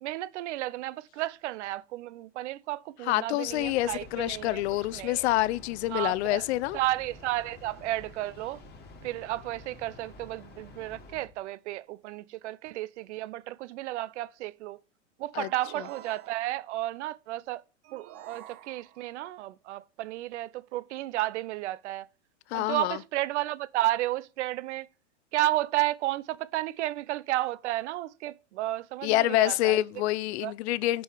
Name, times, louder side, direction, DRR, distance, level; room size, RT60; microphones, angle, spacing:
voice 1, 0.0-4.6 4.9-5.3 5.9-6.4 6.7-8.6 9.0-14.8 15.2-17.6 17.9-22.1 22.5-24.9 25.3-29.8 30.4-30.5, right 15 dB, 70° right, 0.6 m, -32 dB
voice 2, 3.1-6.8 15.3-15.5 22.5-23.0 29.0-31.0, left 16 dB, 60° left, 0.5 m, -27 dB
Train, 3.5-11.3, left 3 dB, 25° left, 2.0 m, -50 dB
sound 1, 15.4-16.8 17.8-19.2, right 11 dB, 40° right, 0.8 m, -48 dB
5.5 x 5.4 x 4.9 m
hypercardioid pair, 115°, 37 cm